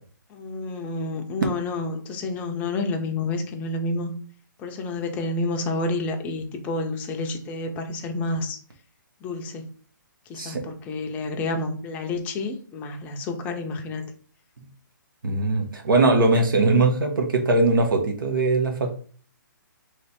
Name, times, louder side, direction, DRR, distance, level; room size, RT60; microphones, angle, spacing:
voice 1, 0.3-4.1 4.6-8.6 9.2-9.7 10.3-14.1, left 2 dB, 15° left, 4 dB, 0.5 m, -29 dB
voice 2, 15.2-18.9, right 2 dB, 80° right, 3 dB, 1.1 m, -21 dB
3.3 x 3.0 x 4.2 m, 0.43 s
hypercardioid pair, 155°, 11 cm